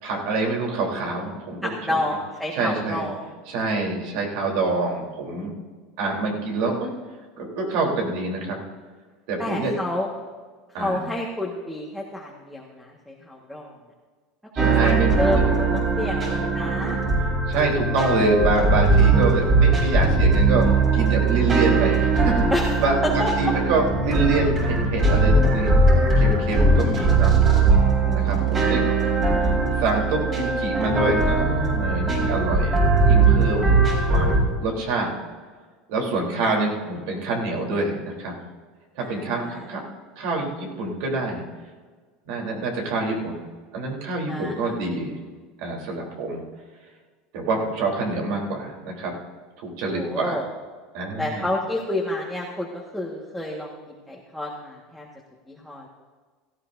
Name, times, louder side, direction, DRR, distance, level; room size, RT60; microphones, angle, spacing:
voice 1, 0.0-2.0 2.5-3.0 3.5-5.5 6.0-6.9 7.4-8.6 9.3-9.7 10.7-11.0 14.5-15.4 17.5-20.7 20.9-22.5 22.8-25.7 26.2-27.4 28.1-28.8 29.8-34.3 34.6-35.1 35.9-38.4 39.0-39.8 40.2-41.4 42.3-43.4 43.7-45.2 45.6-46.4 47.3-49.1 49.6-50.4 50.9-51.5, right 3 dB, 70° right, 0 dB, 3.6 m, -26 dB
voice 2, 1.6-3.2 9.4-10.1 10.8-13.7 14.6-14.9 15.2-17.0 22.5-22.7 23.0-23.5 28.0-28.5 39.0-39.7 44.3-44.7 49.9-50.4 51.2-55.1 55.5-55.9, left 1 dB, ahead, -3 dB, 1.6 m, -29 dB
sound 1, 14.6-34.4, right 3 dB, 30° right, 4.7 m, -20 dB
17.5 x 14.0 x 2.7 m, 1.5 s
supercardioid pair, 125°, 0 cm